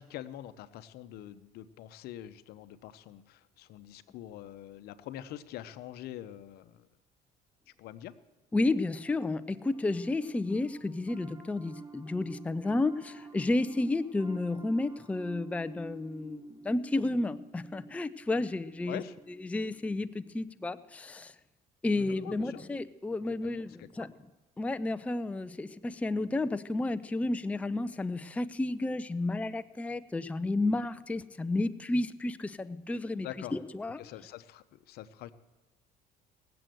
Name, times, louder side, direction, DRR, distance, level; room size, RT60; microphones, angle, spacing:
voice 1, 0.0-6.9 7.8-8.1 18.9-19.2 22.0-22.6 23.4-24.1 33.2-33.6 34.0-35.3, left 12 dB, 70° left, 13 dB, 0.8 m, -44 dB
voice 2, 8.5-19.0 19.4-21.3 21.8-24.1 24.6-34.0, left 2 dB, 10° left, 12 dB, 0.4 m, -32 dB
Piano, 8.9-20.4, right 3 dB, 20° right, 3.3 m, -50 dB
18.5 x 7.8 x 7.7 m, 1.1 s
cardioid pair, 100°, 17 cm